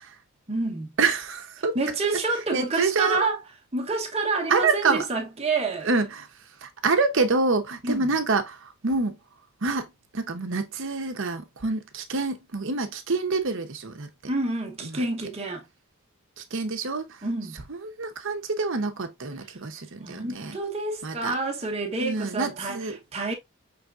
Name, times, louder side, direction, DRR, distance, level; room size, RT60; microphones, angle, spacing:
voice 1, 0.5-0.9 1.7-3.4 3.7-5.9 7.8-8.0 14.3-15.6 17.2-17.6 20.0-23.3, right 3 dB, 30° right, 1.1 m, -28 dB
voice 2, 1.0-1.8 2.1-2.2 2.5-3.2 4.5-5.0 5.8-6.3 6.6-9.2 9.6-9.9 10.1-14.1 14.8-15.0 16.4-17.2 17.7-20.6 21.0-21.3 22.0-23.0, right 3 dB, 60° right, 0.9 m, -27 dB
5.9 x 3.4 x 2.5 m
head